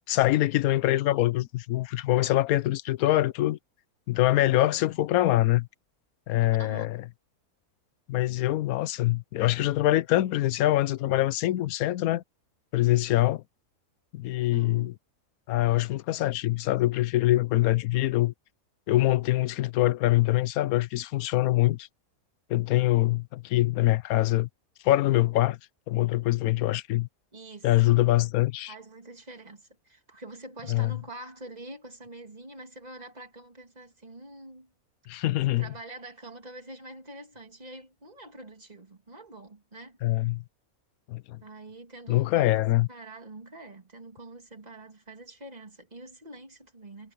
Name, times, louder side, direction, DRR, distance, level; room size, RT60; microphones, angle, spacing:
voice 1, 0.1-3.6 4.1-5.7 6.3-7.0 8.1-12.2 12.7-13.4 14.1-14.9 15.5-18.3 18.9-21.9 22.5-24.5 24.8-25.6 25.9-27.1 27.6-28.7 30.7-30.9 35.1-35.7 40.0-40.4 41.1-41.4 42.1-42.9, left 16 dB, 80° left, 1.1 m, -24 dB
voice 2, 6.5-6.9 14.5-14.9 27.3-28.0 28.7-34.7 35.6-40.0 41.4-42.6 42.9-47.1, right 2 dB, 30° right, 2.6 m, -45 dB
omnidirectional pair, 1.5 m